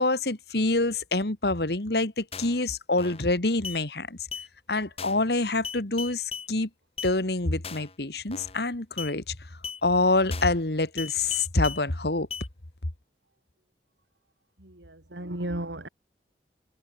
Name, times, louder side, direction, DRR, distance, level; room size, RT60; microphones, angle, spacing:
voice 1, 0.0-4.2 4.7-6.7 7.0-9.4 9.8-12.3, left 2 dB, 60° left, 1.9 m, -26 dB
sound 1, 2.3-2.6 3.0-3.3 3.6-3.8 4.3-4.5 5.0-5.3 5.6-6.5 7.0-7.1 7.6-7.9 8.3-8.6 9.0-9.1 9.6-9.8 10.3-10.6 11.0-11.8 12.3-12.5, left 6 dB, 35° left, 4.4 m, -37 dB
voice 2, 14.6-15.9, right 1 dB, 80° right, 3.6 m, -34 dB
head